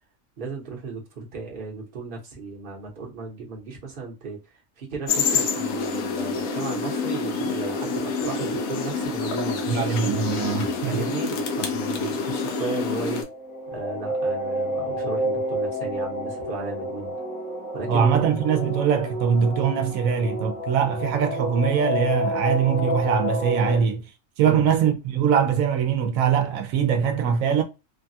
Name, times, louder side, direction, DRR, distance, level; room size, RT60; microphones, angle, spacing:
voice 1, 0.4-4.4 4.8-9.7 10.9-13.2 13.7-17.1 17.7-18.4 24.4-24.7, right 4 dB, 45° right, 1.0 m, -35 dB
sound 1, 5.1-13.2, left 4 dB, 85° left, 1.1 m, -27 dB
voice 2, 9.7-11.0 17.9-24.0 24.4-27.6, right 7 dB, 90° right, 1.0 m, -22 dB
sound 2, 13.1-23.8, equal, 65° left, 1.6 m, -29 dB
3.2 x 2.2 x 2.7 m
omnidirectional pair, 1.4 m